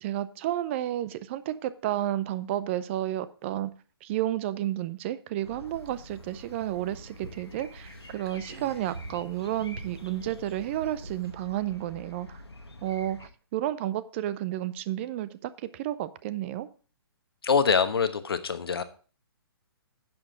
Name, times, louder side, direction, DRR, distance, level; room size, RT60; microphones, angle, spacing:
voice 1, 0.0-3.7 4.0-12.4 12.8-16.7, right 13 dB, 30° right, 16 dB, 0.5 m, -31 dB
sound 1, 5.4-13.3, left 1 dB, 90° left, 1.4 m, -47 dB
jew's harp, 5.7-11.3, right 3 dB, 70° right, 2.2 m, -47 dB
voice 2, 17.4-18.8, left 6 dB, 65° left, 10 dB, 1.2 m, -24 dB
10.5 x 7.4 x 3.8 m, 0.38 s
figure-of-eight pair, 130°, 13 cm